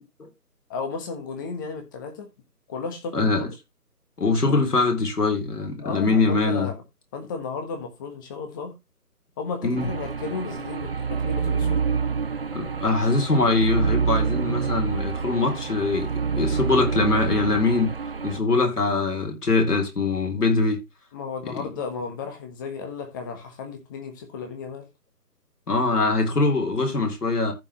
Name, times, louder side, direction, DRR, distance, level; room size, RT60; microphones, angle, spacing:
voice 1, 0.7-2.3 2.7-3.3 5.8-6.8 7.1-8.8 9.4-11.9 21.1-24.9, left 5 dB, 15° left, 1.4 m, -34 dB
voice 2, 3.1-3.5 4.2-6.7 9.6-9.9 12.5-16.1 16.4-17.9 18.2-20.8 21.4-21.7 25.7-27.5, left 3 dB, 70° left, 4.0 m, -23 dB
sound 1, 9.8-18.4, right 5 dB, 40° right, 0.6 m, -27 dB
14.5 x 5.6 x 3.0 m
figure-of-eight pair, 155°, 47 cm